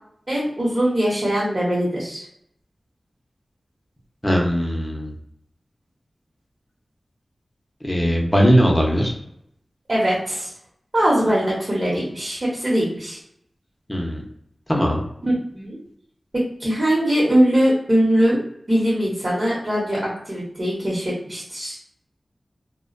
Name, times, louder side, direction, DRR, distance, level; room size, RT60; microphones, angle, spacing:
voice 1, 0.3-2.2 9.9-10.5 10.9-13.2 15.2-15.8 16.3-18.4 18.7-21.8, equal, 45° right, -5 dB, 0.9 m, -21 dB
voice 2, 4.2-5.1 7.8-9.1 13.9-14.2 14.7-15.0, equal, 15° left, -1 dB, 0.7 m, -19 dB
2.3 x 2.1 x 2.4 m, 0.72 s
wide cardioid pair, 55°, 0 cm